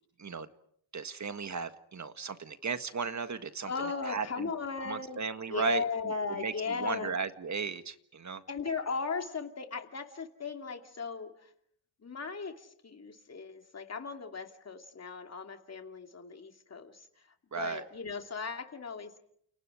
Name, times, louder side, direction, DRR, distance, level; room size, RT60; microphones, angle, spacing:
voice 1, 0.9-4.5 4.8-8.4 17.5-17.8, right 5 dB, 40° right, 10 dB, 1.7 m, -36 dB
voice 2, 3.7-5.2 5.5-7.1 8.5-11.5 12.0-17.0 17.6-19.2, left 5 dB, 35° left, 5 dB, 2.8 m, -37 dB
30.0 x 29.5 x 5.0 m, 0.68 s
cardioid pair, 90°, 44 cm